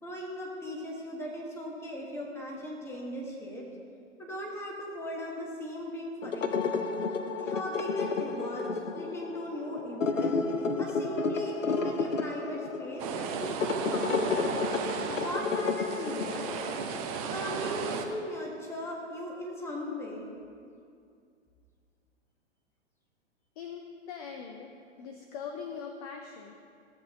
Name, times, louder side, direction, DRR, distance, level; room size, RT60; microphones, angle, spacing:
voice 1, 0.0-3.6 4.2-6.6 7.4-8.7 8.9-10.4 10.8-14.4 15.1-16.5 17.1-20.3, equal, 5° left, -2 dB, 1.4 m, -38 dB
sound 1, 6.2-17.0, left 4 dB, 90° left, 0.7 m, -31 dB
sound 2, 13.0-18.1, right 6 dB, 30° right, 0.7 m, -35 dB
voice 2, 23.6-24.7 25.0-26.5, left 6 dB, 30° left, 4 dB, 0.6 m, -41 dB
14.5 x 7.6 x 3.1 m, 2.3 s
figure-of-eight pair, 115°, 37 cm